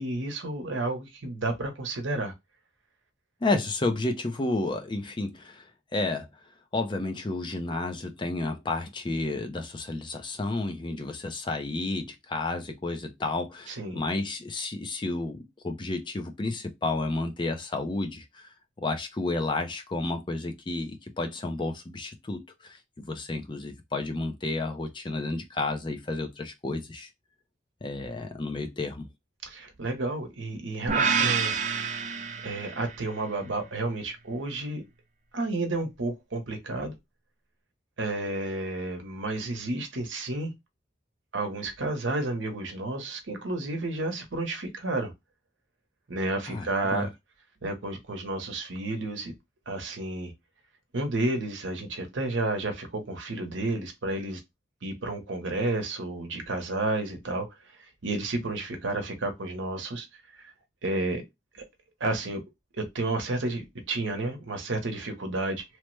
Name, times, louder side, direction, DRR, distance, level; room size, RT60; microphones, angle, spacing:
voice 1, 0.0-2.3 13.7-14.0 29.4-31.5 32.4-34.8 35.3-36.9 38.0-40.5 41.3-45.1 46.1-47.1 47.6-49.3 49.7-50.3 50.9-54.4 54.8-57.5 58.0-60.5 60.8-61.2 61.5-61.6 62.0-62.4 62.7-65.6, right 2 dB, 85° right, 0.9 m, -31 dB
voice 2, 3.4-6.3 6.7-27.1 27.8-29.1 46.5-47.1, left 2 dB, 25° left, 0.4 m, -31 dB
sound 1, 30.9-33.1, right 6 dB, 40° right, 0.4 m, -27 dB
3.1 x 2.1 x 3.1 m
head